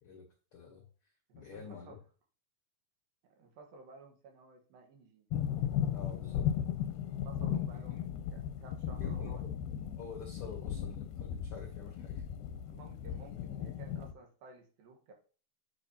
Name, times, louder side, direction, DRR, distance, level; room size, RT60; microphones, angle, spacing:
voice 1, 0.0-2.0 5.9-6.5 7.7-8.0 8.8-9.5 10.0-12.2, left 6 dB, 75° left, 1 dB, 1.3 m, -48 dB
voice 2, 1.3-2.0 3.4-5.3 5.6-6.3 7.1-9.4 12.6-15.1, right 3 dB, 85° right, 2 dB, 3.1 m, -55 dB
sound 1, 5.3-14.1, left 9 dB, 90° left, 2.3 m, -36 dB
8.2 x 5.4 x 2.8 m, 0.38 s
omnidirectional pair, 4.0 m